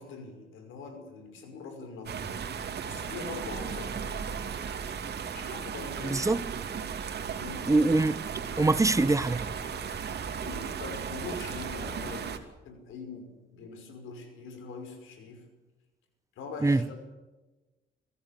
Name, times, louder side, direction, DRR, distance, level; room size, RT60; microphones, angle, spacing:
voice 1, 0.0-2.3 2.8-4.4 5.3-6.3 7.4-7.9 8.5-8.7 10.4-15.5 16.4-17.0, left 4 dB, 85° left, 5.5 m, -43 dB
sound 1, 2.1-12.4, right 6 dB, 55° right, 2.8 m, -36 dB
voice 2, 6.0-6.4 7.7-8.2 8.6-9.5 16.6-16.8, right 2 dB, 15° right, 0.9 m, -23 dB
24.5 x 15.5 x 8.3 m
cardioid pair, 90°, 20 cm